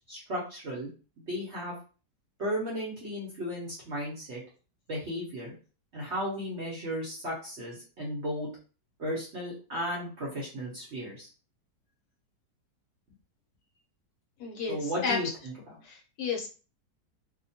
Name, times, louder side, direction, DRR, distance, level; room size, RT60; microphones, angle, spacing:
voice 1, 0.1-0.9 1.2-1.8 2.4-4.4 4.9-5.5 5.9-8.5 9.0-11.3 14.7-15.8, equal, 55° right, -4 dB, 0.9 m, -35 dB
voice 2, 14.4-15.2 15.9-16.5, left 5 dB, 70° left, 0 dB, 1.1 m, -32 dB
2.9 x 2.1 x 2.7 m, 0.36 s
omnidirectional pair, 1.9 m